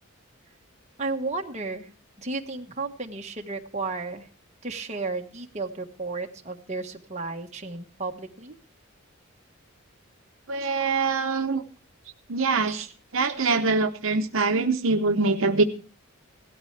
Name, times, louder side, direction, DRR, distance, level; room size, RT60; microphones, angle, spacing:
voice 1, 1.0-1.9 2.2-4.3 4.6-8.6 12.7-12.9 13.2-13.4, right 3 dB, 30° right, 2 dB, 1.4 m, -33 dB
voice 2, 10.5-11.6 12.3-12.9 13.1-15.6, right 3 dB, 70° right, 6 dB, 0.9 m, -24 dB
17.0 x 12.5 x 3.3 m, 0.38 s
head